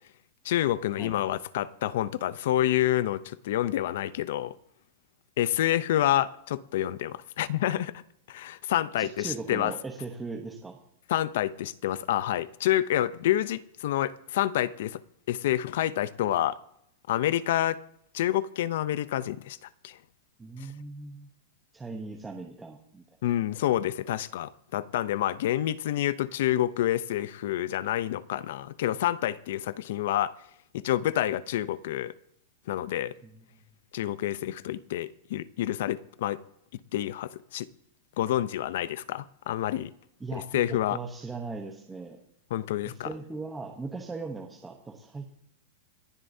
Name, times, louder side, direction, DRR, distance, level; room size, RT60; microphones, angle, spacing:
voice 1, 0.4-4.6 5.4-8.0 8.3-9.7 11.1-15.0 15.3-16.6 17.1-17.8 18.1-19.6 19.8-20.0 23.2-30.3 30.7-32.1 32.7-33.2 33.9-36.4 36.9-37.7 38.2-39.9 40.3-41.0 42.5-43.1, left 13 dB, 55° left, 0.6 m, -28 dB
voice 2, 9.0-10.8 20.4-21.3 21.7-23.0 33.2-33.6 40.2-42.2 42.8-45.3, right 3 dB, 5° right, 0.9 m, -39 dB
27.5 x 11.0 x 2.7 m
supercardioid pair, 175°, 0 cm